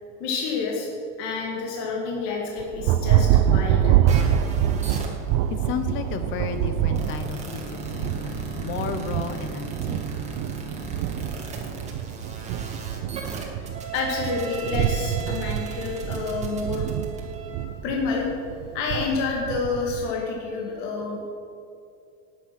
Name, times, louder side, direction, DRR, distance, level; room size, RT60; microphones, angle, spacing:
voice 1, 0.2-0.9 1.2-4.2 13.5-13.7 13.9-16.9 17.8-18.3 18.7-21.2, left 4 dB, 50° left, -1 dB, 2.1 m, -29 dB
Thunder, 2.6-20.1, right 10 dB, 45° right, 0.6 m, -26 dB
sound 1, 4.1-17.6, right 4 dB, 20° right, 2.1 m, -38 dB
voice 2, 5.6-10.4, left 7 dB, 30° left, 9 dB, 1.1 m, -33 dB
19.0 x 8.7 x 6.0 m, 2.5 s
supercardioid pair, 165°, 38 cm